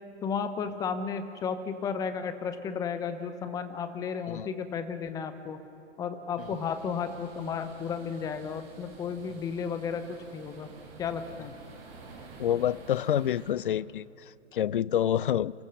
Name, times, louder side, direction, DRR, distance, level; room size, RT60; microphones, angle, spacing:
voice 1, 0.2-5.6 6.0-10.7 11.0-11.5, left 6 dB, 10° left, 10 dB, 0.8 m, -33 dB
sound 1, 6.4-13.5, right 3 dB, 35° right, 7.0 m, -51 dB
voice 2, 12.4-14.1 14.5-15.5, left 10 dB, 45° left, 21 dB, 0.5 m, -27 dB
28.5 x 15.0 x 6.4 m, 2.7 s
figure-of-eight pair, 130°, 36 cm